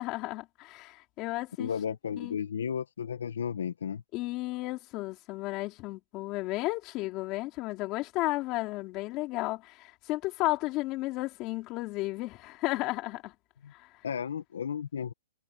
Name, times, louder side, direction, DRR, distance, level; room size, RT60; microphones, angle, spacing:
voice 1, 0.0-1.7 2.2-2.4 4.1-13.3 13.7-13.9, left 19 dB, 25° left, 4.6 m, -33 dB
voice 2, 1.6-4.0 13.6-13.7 14.0-15.1, left 7 dB, 85° left, 1.5 m, -33 dB
hypercardioid pair, 170°, 0 cm